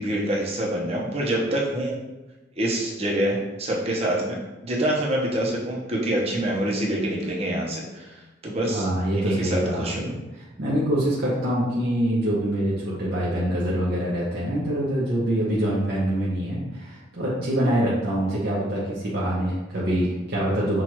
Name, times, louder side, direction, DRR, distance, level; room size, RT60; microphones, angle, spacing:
voice 1, 0.0-2.0 2.6-4.4 4.6-8.1 8.4-8.9 9.1-10.0, right 1 dB, 35° right, -3 dB, 0.9 m, -26 dB
voice 2, 8.7-10.2 10.6-20.8, right 1 dB, 60° right, -7 dB, 0.8 m, -25 dB
6.2 x 2.5 x 3.0 m, 1.1 s
head